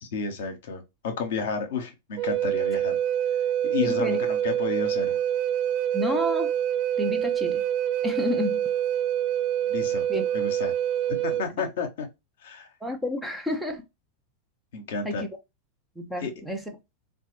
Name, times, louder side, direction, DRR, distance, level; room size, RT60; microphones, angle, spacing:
voice 1, 0.0-3.0 3.6-5.2 9.7-10.0 10.3-10.7 11.1-12.1 12.4-12.7 14.7-15.2 16.2-16.3, left 5 dB, 55° left, 0.8 m, -31 dB
Wind instrument woodwind instrument, 2.2-11.5, right 10 dB, 45° right, 0.3 m, -26 dB
voice 2, 3.8-4.2 5.9-6.5 7.0-7.6 8.0-8.6 10.1-10.2 12.8-13.9 15.0-15.3 16.0-16.6, left 1 dB, ahead, 0.7 m, -30 dB
3.9 x 2.2 x 2.9 m
figure-of-eight pair, 90°, 0 cm